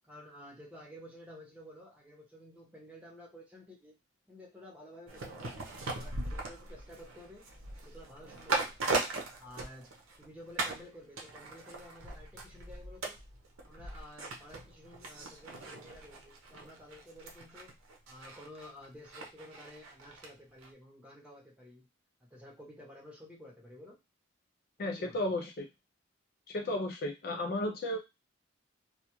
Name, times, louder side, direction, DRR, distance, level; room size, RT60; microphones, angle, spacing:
voice 1, 0.0-4.0 4.3-7.5 7.8-8.8 9.4-13.2 13.6-17.8 18.1-21.9 22.2-24.0 24.8-25.3, left 1 dB, 5° right, -3 dB, 0.8 m, -52 dB
sound 1, 5.1-10.2 10.6-10.9 11.2-20.3 20.6-20.7, right 3 dB, 75° right, 0.7 m, -39 dB
voice 2, 24.8-25.7 26.5-28.0, left 1 dB, 45° left, 3 dB, 0.4 m, -34 dB
2.3 x 2.3 x 2.9 m, 0.23 s
head